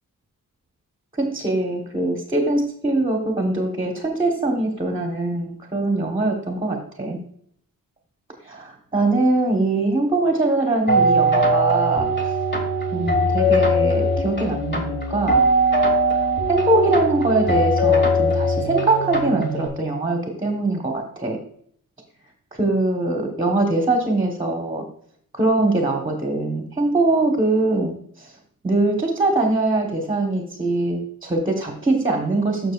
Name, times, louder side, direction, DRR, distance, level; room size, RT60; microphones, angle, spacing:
voice 1, 1.2-7.2 8.4-12.1 12.9-15.4 16.5-21.4 22.6-24.9 25.3-28.3 28.6-32.7, right 2 dB, 15° right, 1 dB, 1.1 m, -22 dB
sound 1, 10.9-19.7, equal, 30° left, 1.6 m, -20 dB
12.0 x 6.2 x 2.4 m, 0.65 s
wide cardioid pair, 160°, 34 cm